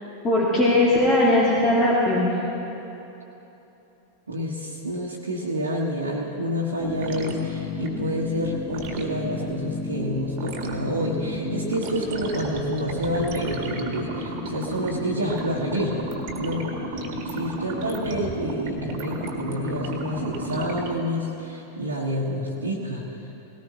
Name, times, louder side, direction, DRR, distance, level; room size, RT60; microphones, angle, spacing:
voice 1, 0.2-2.4, left 1 dB, 25° left, -6 dB, 2.2 m, -19 dB
voice 2, 4.3-16.0 16.4-16.7 17.2-23.3, equal, 75° right, -4 dB, 1.4 m, -28 dB
sound 1, 6.8-21.0, equal, 45° right, 1.8 m, -32 dB
19.0 x 18.0 x 3.0 m, 3.0 s
figure-of-eight pair, 90°, 0 cm